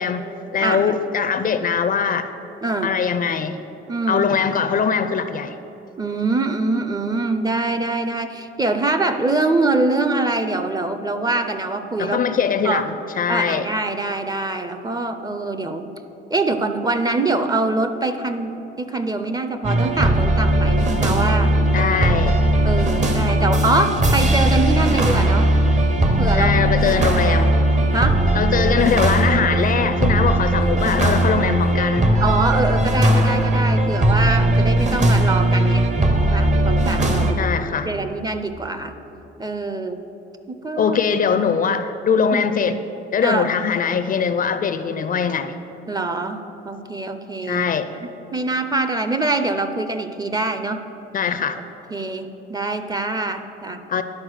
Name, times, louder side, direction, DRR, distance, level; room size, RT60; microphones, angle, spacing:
voice 1, 0.0-2.3 2.8-3.6 4.1-5.5 12.0-13.7 21.7-22.3 26.4-27.5 28.3-32.1 37.4-37.9 40.8-42.8 43.1-45.5 47.5-47.9 51.1-51.6 53.9-54.0, left 6 dB, 45° left, 10 dB, 0.4 m, -21 dB
voice 2, 0.6-1.0 2.6-2.9 3.9-4.3 6.0-12.2 12.6-12.8 13.3-15.9 16.3-21.6 22.6-25.5 26.2-26.5 26.9-28.2 32.2-35.9 36.3-37.4 37.8-38.9 39.4-40.0 40.5-41.0 42.3-42.4 43.2-43.5 45.9-47.7 48.0-50.8 51.9-53.8, right 2 dB, 20° right, 9 dB, 0.5 m, -24 dB
sound 1, 19.6-37.3, right 1 dB, 35° right, 0.9 m, -18 dB
10.5 x 4.3 x 6.4 m, 2.9 s
cardioid pair, 90°, 20 cm